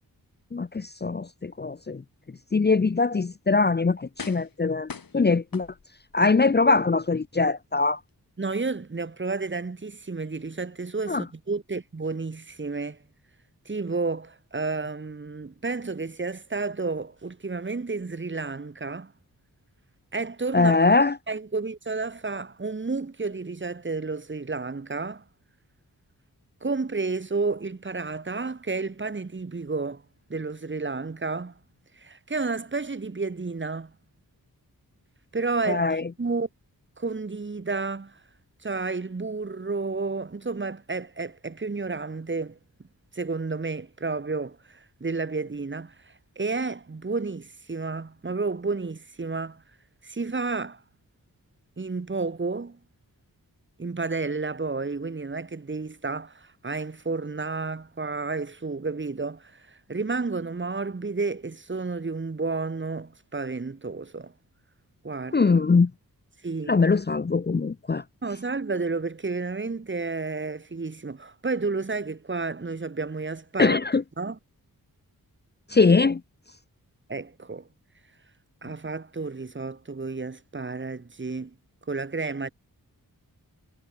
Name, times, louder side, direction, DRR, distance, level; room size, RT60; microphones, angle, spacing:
voice 1, 0.5-2.0 2.5-5.7 6.1-8.0 11.1-11.2 20.5-21.2 35.7-36.1 65.3-65.9 66.7-68.0 73.6-74.0 75.7-76.2, left 4 dB, 30° left, 0.8 m, -22 dB
sound 1, 3.2-3.4 4.2-4.6 4.9-6.1 6.7-6.8, left 6 dB, 70° left, 7.3 m, -41 dB
voice 2, 8.4-13.0 13.7-19.1 20.1-20.7 21.3-25.2 26.6-30.0 30.3-31.5 32.0-33.9 35.3-36.5 37.0-38.2 38.6-42.6 43.1-49.6 50.0-50.8 51.8-52.8 53.8-64.3 65.0-65.4 66.4-66.7 68.2-73.8 74.2-74.4 77.1-77.7 78.6-81.5 81.9-82.5, right 3 dB, 30° right, 1.9 m, -31 dB
wide cardioid pair, 110°, 36 cm